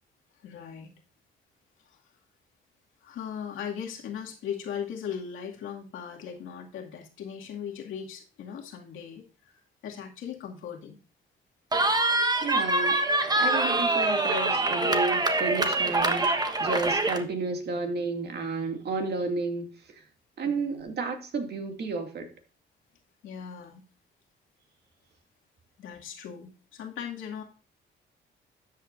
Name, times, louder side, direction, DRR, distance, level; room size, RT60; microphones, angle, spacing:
voice 1, 0.4-0.9 1.9-2.0 3.0-11.0 20.4-20.9 23.2-23.8 25.8-27.4, left 8 dB, 80° left, 2.3 m, -38 dB
Cheering, 11.7-17.2, right 2 dB, 20° right, 1.2 m, -25 dB
voice 2, 12.4-13.0 13.4-19.7 19.9-20.0 20.4-22.3, right 3 dB, 55° right, 2.4 m, -31 dB
12.5 x 8.0 x 2.6 m
cardioid pair, 90°, 20 cm